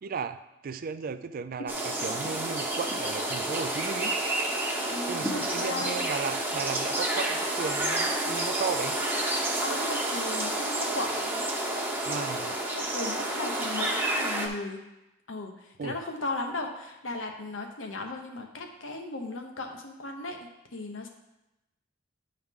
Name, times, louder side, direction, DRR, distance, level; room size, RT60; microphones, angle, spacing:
voice 1, 0.0-4.2 5.1-9.0 12.0-12.5 15.8-16.0, right 5 dB, 50° right, 12 dB, 0.4 m, -35 dB
sound 1, 1.7-14.5, right 1 dB, 10° right, 0.9 m, -30 dB
voice 2, 4.9-6.1 9.6-11.5 12.7-14.8 15.3-21.1, left 2 dB, 80° left, 3 dB, 1.0 m, -36 dB
10.0 x 4.7 x 3.7 m, 0.94 s
head